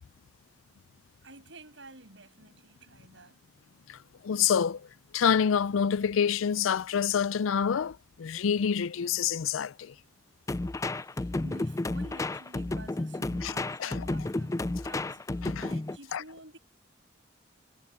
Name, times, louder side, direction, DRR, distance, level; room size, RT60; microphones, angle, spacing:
voice 1, 1.2-3.4 11.2-15.2 15.6-16.6, right 2 dB, 70° right, 6.5 m, -50 dB
voice 2, 4.2-4.8 5.1-9.9 13.4-13.5 13.8-14.0 15.4-15.7 16.1-16.2, left 7 dB, 85° left, 0.4 m, -27 dB
sound 1, 10.5-16.0, left 2 dB, 15° left, 0.3 m, -32 dB
head